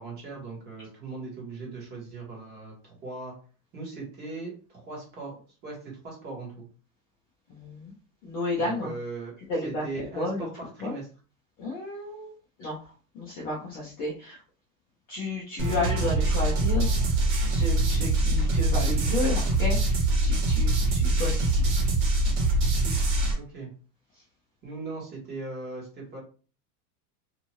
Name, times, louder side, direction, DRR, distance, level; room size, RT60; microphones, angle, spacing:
voice 1, 0.0-3.4 3.7-6.7 8.6-9.3 9.6-11.1 23.3-23.7 24.6-26.2, right 3 dB, 20° right, -2 dB, 1.1 m, -39 dB
voice 2, 7.5-7.9 8.2-8.9 9.5-10.5 10.8-10.9 11.6-14.4 15.1-21.6, left 2 dB, 20° left, -5 dB, 0.4 m, -32 dB
sound 1, 15.6-23.3, right 2 dB, 50° right, 1.4 m, -24 dB
2.7 x 2.4 x 3.0 m, 0.37 s
supercardioid pair, 165°, 46 cm